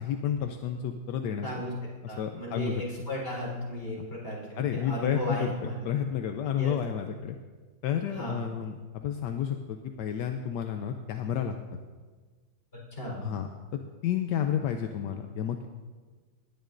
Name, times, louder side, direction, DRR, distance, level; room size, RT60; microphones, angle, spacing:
voice 1, 0.0-1.5 2.0-2.8 4.0-4.1 4.6-5.5 5.9-7.4 7.8-11.6 13.2-13.5 14.0-15.7, left 9 dB, 70° left, 5 dB, 1.1 m, -31 dB
voice 2, 1.4-1.7 2.1-5.8 6.6-6.7 8.1-8.5 12.9-13.2, left 1 dB, 30° left, -4 dB, 4.3 m, -35 dB
19.0 x 10.5 x 2.6 m, 1.4 s
omnidirectional pair, 2.2 m